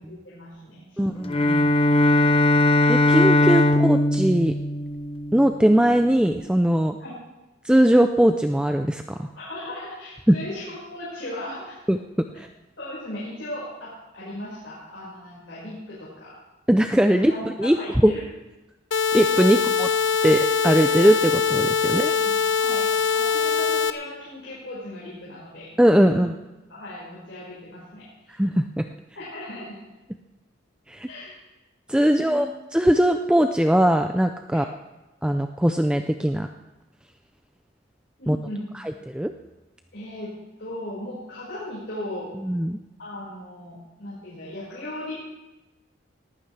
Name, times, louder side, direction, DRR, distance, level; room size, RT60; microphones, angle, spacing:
voice 1, 0.1-1.5 7.0-7.1 9.3-11.8 12.8-16.3 17.1-18.2 19.4-19.5 22.0-26.3 26.7-28.4 29.1-29.8 31.0-31.3 32.1-32.4 34.5-34.6 38.2-38.6 39.9-40.3 40.6-42.3 43.0-45.2, left 1 dB, 65° left, -7 dB, 5.2 m, -37 dB
voice 2, 1.0-1.7 2.9-4.5 5.3-7.0 7.6-9.3 10.3-10.4 11.9-12.5 16.7-17.3 17.6-17.8 18.0-18.1 19.1-19.9 20.2-22.1 25.8-26.3 28.4-28.8 30.9-31.1 31.9-32.5 32.7-34.6 35.2-36.5 38.3-38.4 39.1-39.3 42.5-42.8, equal, 5° right, 6 dB, 0.4 m, -20 dB
Bowed string instrument, 1.2-5.6, left 1 dB, 30° left, 0.8 m, -20 dB
sound 1, 18.9-23.9, left 6 dB, 80° left, 0.7 m, -22 dB
19.5 x 14.5 x 3.3 m, 1.0 s
head